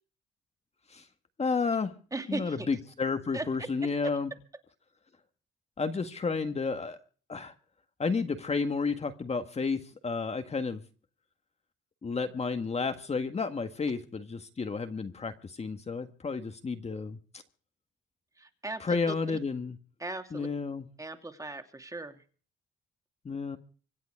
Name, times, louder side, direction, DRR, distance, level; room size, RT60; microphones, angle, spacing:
voice 1, 1.4-1.9 2.3-4.3 5.8-7.0 7.3-7.5 8.0-10.8 12.0-17.2 18.8-19.8 20.3-20.9 23.2-23.6, left 4 dB, 30° left, 1.7 m, -31 dB
voice 2, 2.1-2.7 3.3-3.5 18.4-18.9 20.0-20.5 21.0-22.2, right 2 dB, 15° right, 2.7 m, -37 dB
25.5 x 9.4 x 4.7 m
cardioid pair, 90°, 20 cm